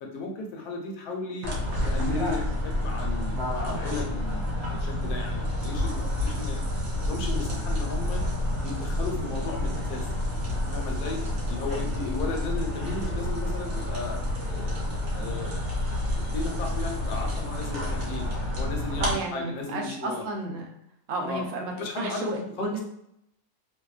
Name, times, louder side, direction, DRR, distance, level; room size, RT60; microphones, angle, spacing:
voice 1, 0.0-1.5 1.8-6.6 7.1-8.2 8.6-10.1 10.5-11.2 11.5-14.8 15.1-15.6 16.1-18.3 18.6-20.2 21.2-21.4 21.8-22.3 22.6-22.8, left 3 dB, 75° left, 1 dB, 1.1 m, -35 dB
sound 1, 1.4-19.1, left 1 dB, 60° right, 0.8 m, -29 dB
voice 2, 19.0-20.7 21.1-22.8, right 2 dB, 85° right, 1 dB, 0.5 m, -32 dB
2.7 x 2.2 x 2.3 m, 0.78 s
omnidirectional pair, 1.7 m